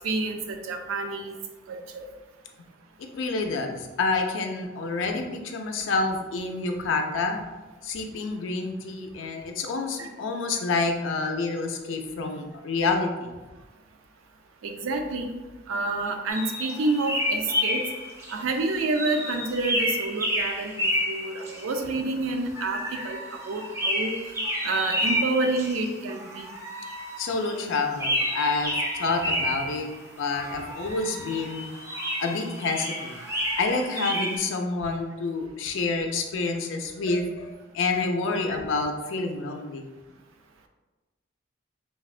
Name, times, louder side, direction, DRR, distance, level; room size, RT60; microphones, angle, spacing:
voice 1, 0.0-1.3 1.7-2.1 10.0-10.1 14.6-15.3 15.7-17.8 18.3-24.1 24.6-26.5, right 2 dB, 85° right, 4 dB, 0.4 m, -28 dB
voice 2, 3.1-7.4 7.8-13.3 27.2-28.7 29.0-29.9 30.2-31.7 32.2-33.2 33.6-39.9, left 3 dB, 70° left, 4 dB, 0.4 m, -28 dB
sound 1, 16.3-18.4 18.9-22.1 22.5-27.7 27.9-29.9 30.3-34.4, equal, 15° right, 0.4 m, -30 dB
3.4 x 2.1 x 2.4 m, 1.2 s
head